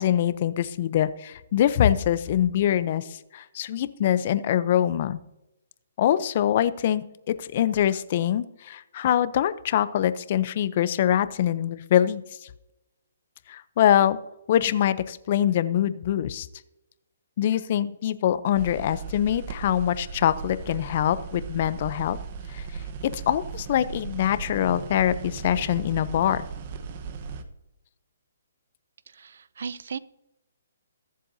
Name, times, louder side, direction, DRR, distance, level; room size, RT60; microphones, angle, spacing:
voice 1, 0.0-3.1 3.3-5.2 6.0-12.2 13.5-14.2 14.5-16.5 17.4-22.2 22.5-22.6 23.0-26.5, left 10 dB, 45° left, 15 dB, 0.6 m, -24 dB
sound 1, 18.5-27.4, right 5 dB, 40° right, 1.1 m, -37 dB
voice 2, 29.1-30.0, right 6 dB, 70° right, 19 dB, 0.5 m, -36 dB
22.0 x 7.5 x 2.7 m, 0.92 s
hypercardioid pair, 150°, 0 cm